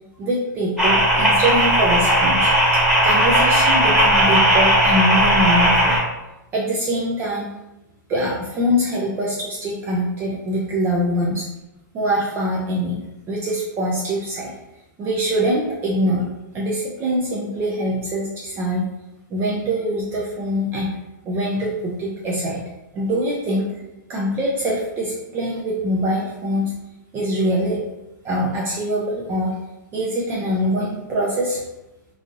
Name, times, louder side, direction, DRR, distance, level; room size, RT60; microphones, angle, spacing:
voice 1, 0.2-2.5 3.0-6.0 6.5-7.5 8.1-11.4 11.9-12.9 13.3-14.5 15.0-16.2 16.5-18.8 19.3-20.9 21.2-22.6 22.9-23.7 24.1-26.7 27.1-27.8 28.2-29.6 29.9-31.6, equal, 20° right, -3 dB, 0.4 m, -23 dB
sound 1, 0.8-6.0, right 1 dB, 5° right, 1.4 m, -16 dB
3.0 x 2.5 x 2.6 m, 0.96 s
hypercardioid pair, 140°, 11 cm